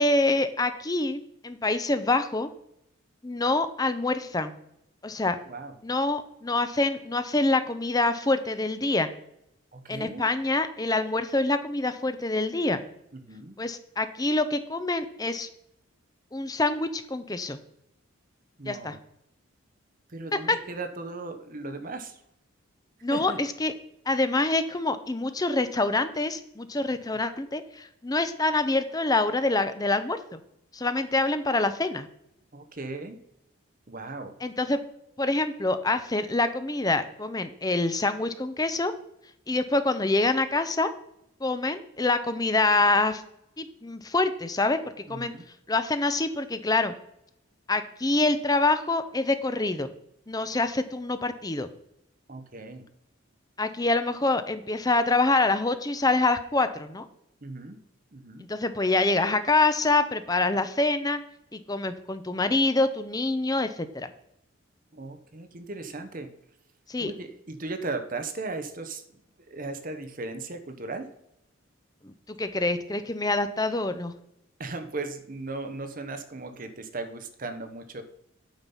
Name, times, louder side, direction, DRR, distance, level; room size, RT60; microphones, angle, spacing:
voice 1, 0.0-2.5 3.2-4.5 5.0-5.4 5.8-9.1 9.9-12.8 13.6-15.5 16.3-17.6 18.7-19.0 20.3-20.6 23.0-23.7 24.1-30.4 30.7-32.1 34.4-34.8 35.2-38.9 39.5-40.9 41.4-43.2 43.6-44.8 45.1-45.3 45.7-46.9 47.7-49.9 50.3-51.7 53.6-57.1 58.4-61.2 61.5-64.1 66.9-67.1 72.0-72.1 72.4-74.1, left 2 dB, 20° left, 10 dB, 0.6 m, -26 dB
voice 2, 9.7-10.2 13.1-13.5 18.6-19.0 20.1-22.2 23.1-23.4 32.5-33.2 33.9-34.3 45.1-45.4 52.3-52.8 57.4-57.8 58.1-58.5 64.9-66.3 67.0-69.0 69.4-71.1 74.6-78.0, right 3 dB, 40° right, 8 dB, 0.9 m, -37 dB
9.0 x 5.9 x 5.5 m, 0.79 s
head